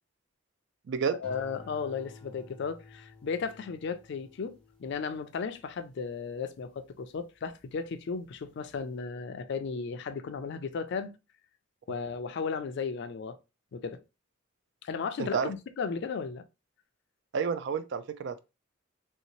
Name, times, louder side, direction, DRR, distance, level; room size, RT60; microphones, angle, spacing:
voice 1, 1.2-11.2 11.9-13.4 13.7-14.0 14.8-16.4, left 5 dB, 55° left, 0.4 m, -35 dB
sound 1, 1.2-7.7 8.2-8.7, left 2 dB, 5° left, 0.5 m, -54 dB
voice 2, 15.2-15.5 17.3-18.4, right 6 dB, 55° right, 0.3 m, -30 dB
3.2 x 2.8 x 2.9 m
head